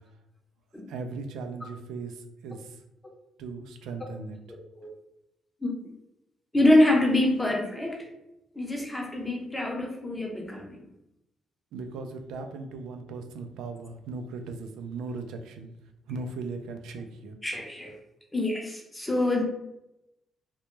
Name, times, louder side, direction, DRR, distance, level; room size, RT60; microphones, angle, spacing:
voice 1, 0.9-2.8 3.4-4.4 11.7-15.7 16.1-17.4, right 3 dB, 85° right, 6 dB, 0.3 m, -38 dB
voice 2, 4.5-4.9 5.6-5.9 6.5-8.1 8.5-10.8 17.4-17.9 18.3-19.4, left 1 dB, 15° left, 1 dB, 0.6 m, -25 dB
2.1 x 2.1 x 3.0 m, 0.87 s
cardioid pair, 90°, 0 cm